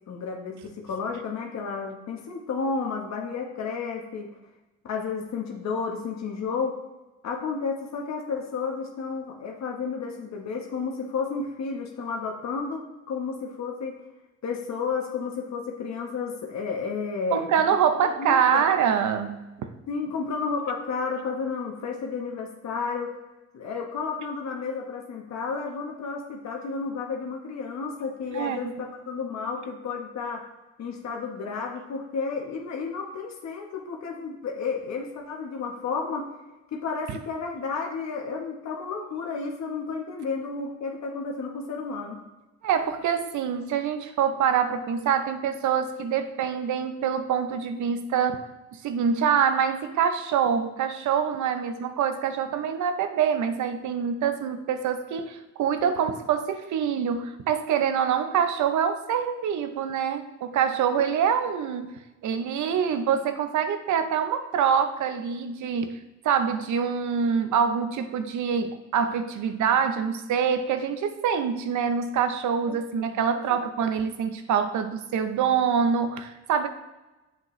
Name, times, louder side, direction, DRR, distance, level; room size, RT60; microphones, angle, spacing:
voice 1, 0.1-4.3 4.8-6.7 7.2-13.9 14.4-17.5 18.0-18.6 19.9-23.1 23.5-30.4 30.8-36.3 36.7-42.2 61.0-61.1 72.6-73.2 73.5-73.6, left 5 dB, 65° left, 0 dB, 1.1 m, -32 dB
voice 2, 17.3-19.5 28.3-28.6 37.1-37.2 42.6-61.9 62.2-66.0 66.2-76.7, right 7 dB, 75° right, 9 dB, 0.7 m, -25 dB
7.6 x 5.6 x 3.1 m, 1.1 s
cardioid pair, 90°, 30 cm